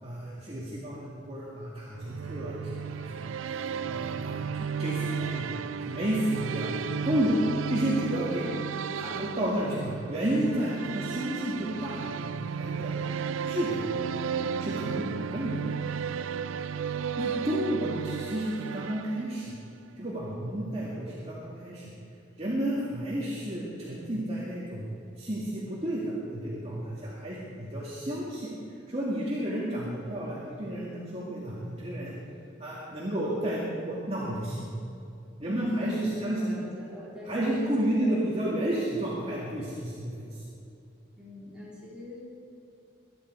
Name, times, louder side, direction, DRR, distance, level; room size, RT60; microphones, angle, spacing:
voice 1, 0.0-3.3 3.9-5.5 5.8-7.4 7.7-8.5 9.0-13.0 13.4-13.8 14.6-15.6 17.2-19.5 20.0-21.9 22.4-24.8 25.2-32.1 32.6-34.7 35.4-36.6 37.2-40.4, right 1 dB, 30° right, -6 dB, 2.1 m, -31 dB
sound 1, 1.9-19.7, right 7 dB, 85° right, 0.4 m, -34 dB
voice 2, 9.0-9.4 35.5-38.3 41.2-42.2, left 2 dB, 5° right, -9 dB, 4.5 m, -42 dB
22.5 x 10.5 x 4.6 m, 2.6 s
head